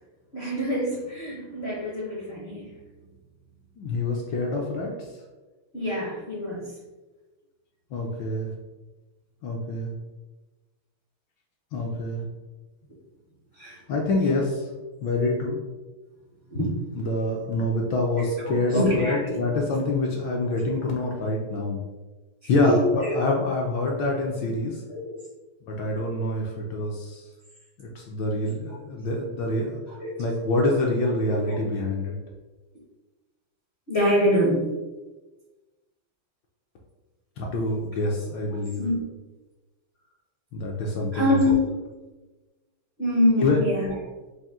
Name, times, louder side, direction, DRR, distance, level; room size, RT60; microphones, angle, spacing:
voice 1, 0.3-2.7 5.7-6.7 13.6-13.8 14.2-14.3 16.5-16.7 18.2-19.4 22.4-23.2 24.9-25.2 30.0-30.1 31.5-31.6 33.9-34.6 38.0-38.1 38.5-39.0 41.1-41.7 43.0-43.9, left 1 dB, 55° left, -5 dB, 0.7 m, -25 dB
voice 2, 3.8-4.9 7.9-8.5 9.4-9.9 11.7-12.2 13.9-14.7 15.0-15.6 16.9-21.8 22.5-24.8 25.6-27.2 27.8-29.8 30.2-32.2 37.4-38.8 40.5-41.4 43.4-43.6, left 2 dB, 70° left, -1 dB, 1.1 m, -26 dB
4.2 x 2.5 x 3.5 m, 1.2 s
omnidirectional pair, 2.4 m